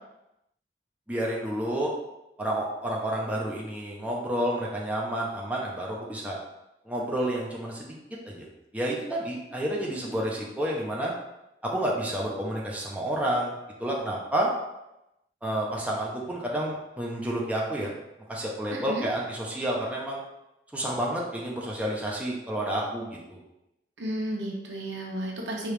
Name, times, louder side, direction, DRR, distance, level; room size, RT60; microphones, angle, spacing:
voice 1, 1.1-1.9 2.4-6.4 6.9-8.0 8.2-8.4 8.7-11.1 11.6-14.5 15.4-17.9 18.3-20.2 20.7-23.4, right 1 dB, 10° right, -3 dB, 0.6 m, -30 dB
voice 2, 18.7-19.1 24.0-25.7, right 1 dB, 85° right, -1 dB, 1.0 m, -32 dB
4.8 x 3.0 x 3.3 m, 0.90 s
head